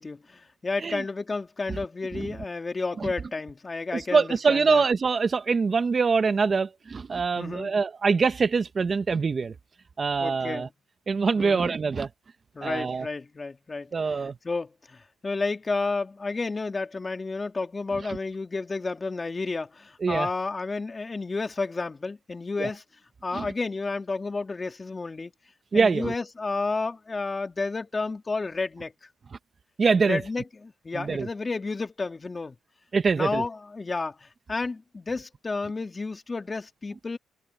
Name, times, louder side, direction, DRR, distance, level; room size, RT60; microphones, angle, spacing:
voice 1, 0.0-4.8 7.3-7.7 10.2-10.7 11.4-11.7 12.5-22.8 23.2-25.3 25.7-28.9 30.1-32.6 33.1-37.2, left 3 dB, 25° left, 3.1 m, -31 dB
voice 2, 3.9-9.5 10.0-10.7 11.1-12.1 12.6-13.1 13.9-14.4 18.0-18.1 20.0-20.3 22.6-22.7 23.3-23.5 25.7-26.1 29.8-30.2 30.9-31.3 32.9-33.4, right 5 dB, 35° right, 1.5 m, -24 dB
cardioid pair, 90°, 0 cm